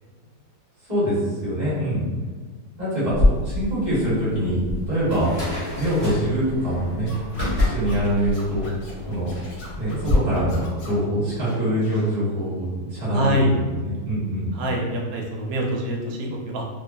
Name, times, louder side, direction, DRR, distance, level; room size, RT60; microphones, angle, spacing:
voice 1, 0.8-2.1 2.8-5.3 5.7-7.1 7.6-8.7 9.1-9.3 9.8-14.5, equal, 25° right, -10 dB, 1.3 m, -24 dB
sound 1, 3.1-10.1, left 1 dB, 10° right, 0.9 m, -26 dB
Scratching (performance technique), 7.1-11.1 11.4-12.1, left 1 dB, 65° left, 0.9 m, -42 dB
voice 2, 13.1-13.5 14.5-16.6, equal, 85° right, 0 dB, 1.3 m, -25 dB
3.0 x 2.2 x 2.5 m, 1.4 s
omnidirectional pair, 1.9 m